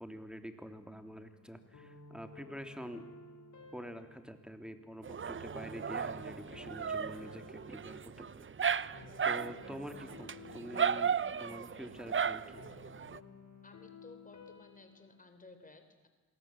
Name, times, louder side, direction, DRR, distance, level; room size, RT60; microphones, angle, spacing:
voice 1, 0.0-3.0 3.7-9.0 9.2-11.1 11.4-12.6, equal, 5° right, 7 dB, 3.1 m, -47 dB
sound 1, 0.8-15.2, left 3 dB, 65° left, 4.8 m, -55 dB
Dog, 5.0-13.2, right 7 dB, 40° right, 0.8 m, -36 dB
voice 2, 13.6-16.1, left 2 dB, 25° left, 8 dB, 3.5 m, -56 dB
26.5 x 19.0 x 8.8 m, 1.2 s
cardioid pair, 65°, 32 cm